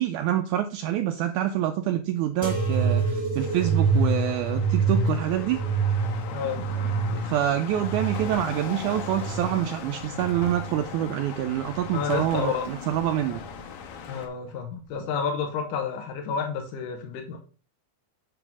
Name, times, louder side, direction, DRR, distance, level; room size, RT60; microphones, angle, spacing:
voice 1, 0.0-5.6 6.8-6.9 7.1-13.4, right 11 dB, 85° right, 1.8 m, -26 dB
sound 1, 2.4-9.6 10.2-10.9 11.7-12.2 13.2-13.3, right 4 dB, 15° right, 1.2 m, -27 dB
sound 2, 3.3-14.3, left 6 dB, 90° left, 2.9 m, -39 dB
voice 2, 6.3-6.7 11.9-12.7 14.1-17.4, left 6 dB, 75° left, 2.6 m, -30 dB
8.3 x 3.4 x 5.9 m
omnidirectional pair, 3.9 m